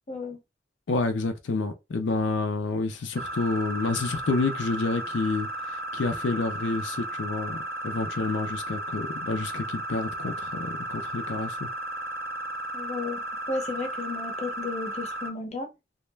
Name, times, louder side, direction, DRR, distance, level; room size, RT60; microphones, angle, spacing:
voice 1, 0.1-0.4 12.7-15.7, left 3 dB, 35° left, 0.6 m, -34 dB
voice 2, 0.9-5.5 5.9-7.6 7.8-11.7, left 3 dB, 85° left, 0.5 m, -29 dB
sound 1, 3.2-15.3, right 1 dB, 55° right, 0.6 m, -34 dB
2.3 x 2.1 x 3.2 m
head